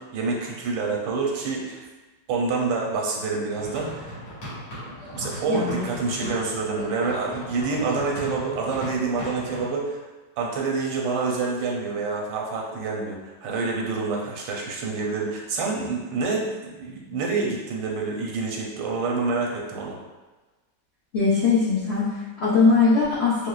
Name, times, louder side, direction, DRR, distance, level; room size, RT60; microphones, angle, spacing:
voice 1, 0.0-1.8 2.3-4.2 4.9-10.0 10.4-20.0, right 4 dB, 80° right, -1 dB, 1.3 m, -27 dB
sound 1, 3.5-9.6, equal, 90° left, 2.1 m, -37 dB
voice 2, 5.5-5.9 21.1-23.5, left 4 dB, 70° left, -9 dB, 0.6 m, -21 dB
5.1 x 2.0 x 2.3 m, 1.2 s
omnidirectional pair, 1.9 m